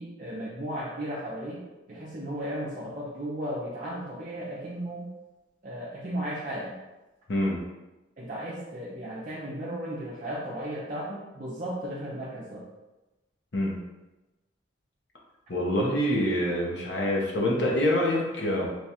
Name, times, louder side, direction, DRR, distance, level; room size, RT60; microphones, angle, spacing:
voice 1, 0.0-1.6 1.9-5.1 5.6-6.7 8.2-12.6, right 1 dB, 45° right, -7 dB, 0.6 m, -35 dB
voice 2, 15.5-18.7, left 1 dB, 65° left, -3 dB, 0.9 m, -26 dB
3.2 x 2.3 x 4.2 m, 1.1 s
head